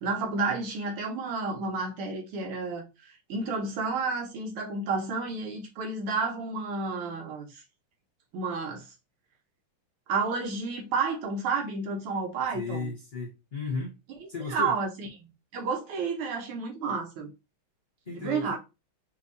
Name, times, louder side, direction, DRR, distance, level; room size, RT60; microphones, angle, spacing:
voice 1, 0.0-2.9 3.3-7.6 8.3-8.9 10.1-12.9 14.2-15.1 15.5-17.3 18.1-18.6, right 4 dB, 85° right, 2.0 m, -31 dB
voice 2, 12.5-14.0 14.3-14.7 18.1-18.6, left 4 dB, 45° left, 0.9 m, -34 dB
5.9 x 2.8 x 2.7 m
omnidirectional pair, 2.3 m